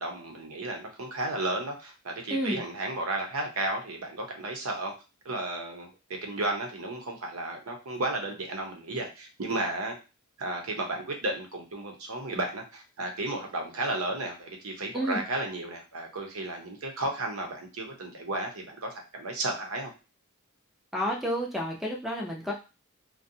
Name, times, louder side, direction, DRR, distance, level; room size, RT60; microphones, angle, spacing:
voice 1, 0.0-4.9 5.2-10.0 10.4-19.9, right 2 dB, 85° right, 3 dB, 0.7 m, -33 dB
voice 2, 2.3-2.6 14.9-15.2 20.9-22.5, equal, ahead, -1 dB, 0.5 m, -30 dB
2.5 x 2.2 x 2.6 m, 0.30 s
head